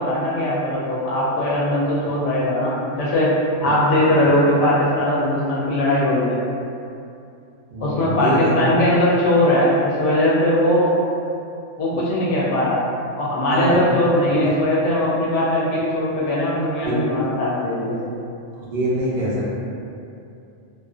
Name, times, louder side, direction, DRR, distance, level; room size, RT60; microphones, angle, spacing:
voice 1, 0.0-6.4 7.8-11.0 11.8-12.8 13.2-18.0, left 1 dB, 85° left, -7 dB, 0.9 m, -20 dB
voice 2, 7.7-8.5 13.5-13.8 16.8-17.0 18.7-19.5, right 1 dB, 55° right, -8 dB, 0.6 m, -24 dB
2.6 x 2.2 x 2.3 m, 2.6 s
omnidirectional pair, 1.2 m